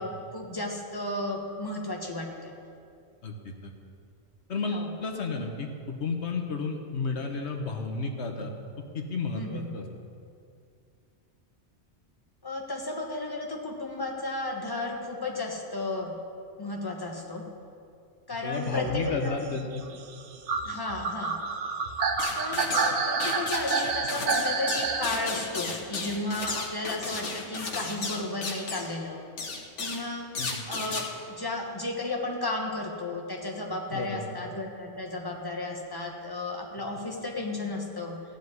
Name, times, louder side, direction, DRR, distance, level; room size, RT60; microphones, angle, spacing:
voice 1, 0.0-2.5 4.7-4.9 9.3-9.8 12.4-16.2 16.6-17.4 18.3-19.3 20.6-21.4 22.3-29.2 29.8-30.3 30.7-31.0 31.3-38.2, left 2 dB, 20° left, 0 dB, 1.4 m, -33 dB
voice 2, 3.2-3.7 4.5-8.5 8.9-9.8 18.4-19.8 30.4-30.6 33.9-34.3, left 4 dB, 70° left, 3 dB, 1.4 m, -32 dB
sound 1, 18.7-25.2 26.4-26.5, right 4 dB, 80° right, 1.1 m, -29 dB
sound 2, 22.2-22.9 23.2-28.9 29.4-30.0 30.3-31.1, left 3 dB, 90° left, 1.6 m, -34 dB
14.5 x 5.1 x 9.5 m, 2.4 s
omnidirectional pair, 1.2 m